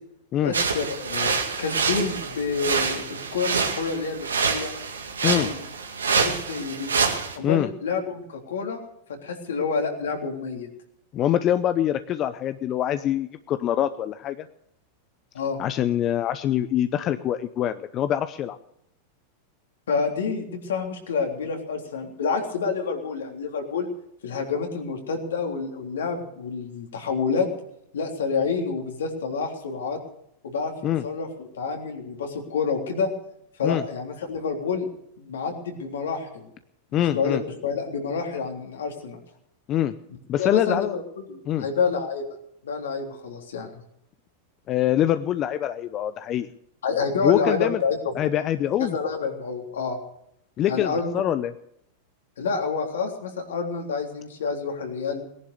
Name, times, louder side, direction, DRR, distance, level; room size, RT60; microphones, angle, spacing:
voice 1, 0.4-4.7 5.2-5.6 6.1-6.9 7.3-8.8 9.2-10.7 15.3-15.6 19.9-23.9 24.2-27.5 27.9-30.0 30.4-30.7 31.0-33.1 33.6-34.9 35.2-36.5 36.9-39.2 40.4-42.2 42.6-43.8 46.8-48.2 48.8-50.0 50.7-51.2 52.4-55.2, left 5 dB, 75° left, 3 dB, 3.5 m, -28 dB
sound 1, 0.5-7.4, right 5 dB, 90° right, 2.2 m, -26 dB
voice 2, 11.1-14.4 15.6-18.6 30.8-31.0 33.6-33.8 36.9-37.4 39.7-40.0 40.3-40.9 41.5-41.7 44.7-46.5 47.2-47.8 48.1-48.9 50.6-51.5, left 11 dB, 40° left, 11 dB, 0.8 m, -24 dB
18.5 x 11.0 x 6.7 m, 0.76 s
hypercardioid pair, 100°, 0 cm